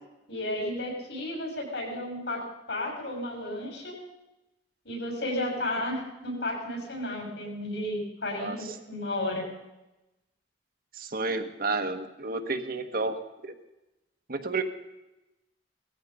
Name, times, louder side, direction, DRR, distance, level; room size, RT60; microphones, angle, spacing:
voice 1, 0.3-2.4 2.7-3.9 4.8-9.4, left 1 dB, 75° left, 0 dB, 6.6 m, -33 dB
voice 2, 10.9-13.2 13.4-13.5 14.3-14.6, right 3 dB, 55° right, 7 dB, 1.3 m, -31 dB
18.5 x 14.0 x 5.4 m, 0.96 s
head